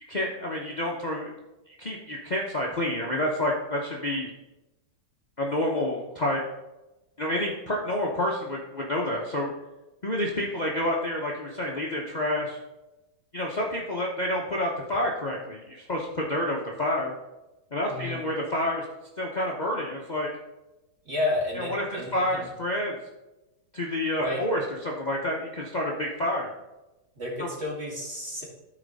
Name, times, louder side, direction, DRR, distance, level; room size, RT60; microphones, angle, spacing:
voice 1, 0.1-1.3 1.7-4.3 5.4-6.4 7.2-9.5 10.0-12.6 13.3-17.1 17.7-18.8 19.2-20.3 21.5-23.0 23.7-26.5 27.4-27.5, left 1 dB, 65° left, -3 dB, 0.4 m, -29 dB
voice 2, 17.9-18.2 21.1-22.4 24.2-24.4 27.2-28.4, left 1 dB, 30° right, -4 dB, 2.3 m, -31 dB
13.0 x 4.4 x 4.0 m, 1.0 s
omnidirectional pair, 2.2 m